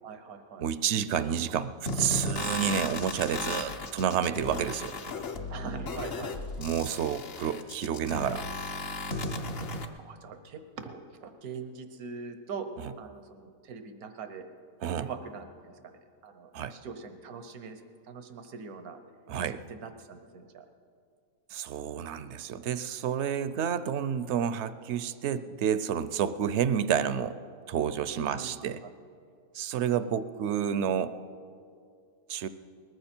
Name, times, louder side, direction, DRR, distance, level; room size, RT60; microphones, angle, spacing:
voice 1, 0.0-0.7 5.5-6.3 10.0-12.7 13.0-14.5 15.0-15.9 16.2-19.0 19.5-20.7 28.2-28.9, right 5 dB, 90° right, 8 dB, 1.4 m, -42 dB
voice 2, 0.6-4.9 6.6-8.4 14.8-15.1 16.5-16.7 19.3-19.6 21.5-27.4 27.7-28.8 29.5-31.1 32.3-32.5, right 8 dB, 65° right, 13 dB, 0.7 m, -30 dB
sound 1, 1.9-9.9, left 2 dB, 50° left, 0.9 m, -35 dB
20.0 x 14.0 x 4.4 m, 2.3 s
omnidirectional pair, 1.5 m